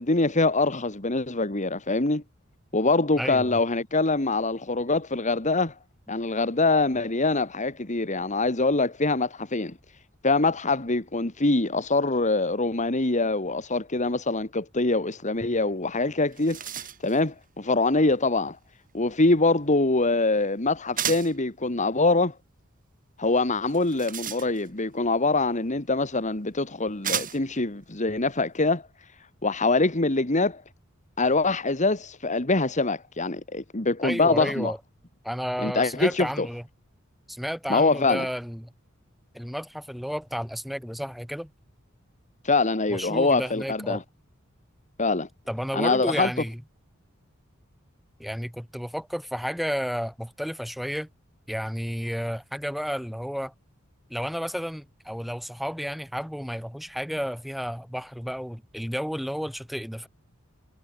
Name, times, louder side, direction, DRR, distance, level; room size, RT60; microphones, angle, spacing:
voice 1, 0.0-2.2 2.7-5.7 6.1-9.7 10.2-16.6 17.0-18.6 18.9-22.3 23.2-28.8 29.4-30.6 31.2-34.7 35.6-36.5 37.7-38.3 42.4-44.0 45.0-45.3 45.7-46.3, left 3 dB, 35° left, 2.1 m, -24 dB
voice 2, 3.2-3.6 34.0-34.8 35.2-36.6 37.3-38.7 39.3-41.5 42.9-44.0 45.5-46.6 48.2-51.1 51.5-53.5 54.1-60.1, equal, ahead, 4.2 m, -32 dB
sound 1, 15.8-15.9 16.2-17.2 21.0-21.4 23.7-24.8 25.9-26.0 27.0-27.6, right 9 dB, 40° right, 4.7 m, -33 dB
head